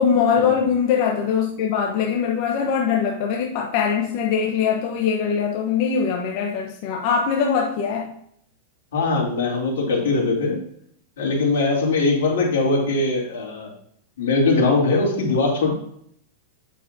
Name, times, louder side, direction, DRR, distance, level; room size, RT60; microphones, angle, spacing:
voice 1, 0.0-8.1, left 6 dB, 50° left, 1.0 m, -22 dB
voice 2, 8.9-10.6 11.2-13.7 14.2-15.8, left 3 dB, 85° left, 3.2 m, -21 dB
8.7 x 6.8 x 2.8 m
supercardioid pair, 150°, 0 cm